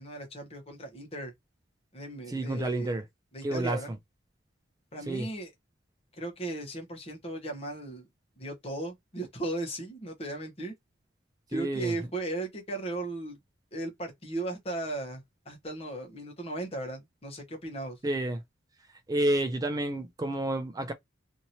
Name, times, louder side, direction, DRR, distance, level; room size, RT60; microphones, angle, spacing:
voice 1, 0.0-1.3 1.9-3.0 3.3-3.9 4.9-5.5 6.1-8.1 8.4-10.7 11.5-13.4 13.7-18.0, right 2 dB, 30° left, 1.0 m, -36 dB
voice 2, 2.3-3.0 3.4-3.8 5.1-5.3 11.5-11.9 18.0-18.4 19.1-20.9, right 1 dB, 20° right, 0.3 m, -29 dB
2.9 x 2.6 x 2.7 m
head